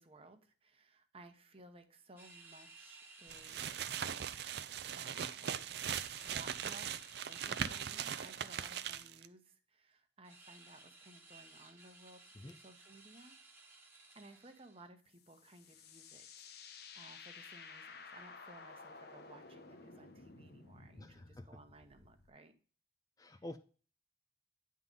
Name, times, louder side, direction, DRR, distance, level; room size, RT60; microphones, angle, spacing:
voice 1, 0.0-4.1 4.9-5.5 6.2-13.4 13.9-16.5 16.9-22.5 23.2-23.4, right 2 dB, 35° right, 7 dB, 0.9 m, -59 dB
sound 1, 2.2-4.8 5.7-9.1 10.2-14.9, right 3 dB, 15° right, 1.1 m, -59 dB
sound 2, 3.3-9.3, right 8 dB, 65° right, 0.4 m, -40 dB
sound 3, 15.1-22.3, left 4 dB, 60° left, 0.8 m, -54 dB
voice 2, 21.0-21.5 23.2-23.6, left 1 dB, 20° left, 9 dB, 0.4 m, -48 dB
9.6 x 3.8 x 5.4 m, 0.39 s
head